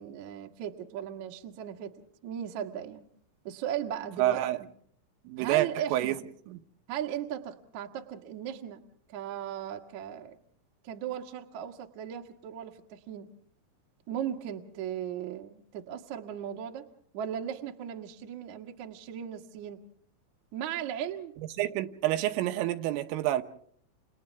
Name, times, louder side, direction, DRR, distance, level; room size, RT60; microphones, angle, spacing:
voice 1, 0.0-3.0 3.4-4.4 5.4-6.2 6.9-8.8 9.1-10.4 10.8-13.3 14.1-16.8 17.1-19.8 20.5-21.3, right 9 dB, 60° right, 2.0 m, -37 dB
voice 2, 4.2-4.6 5.3-6.2 6.5-6.6 21.6-23.4, right 14 dB, 85° right, 3.6 m, -28 dB
29.0 x 29.0 x 3.5 m
omnidirectional pair, 5.8 m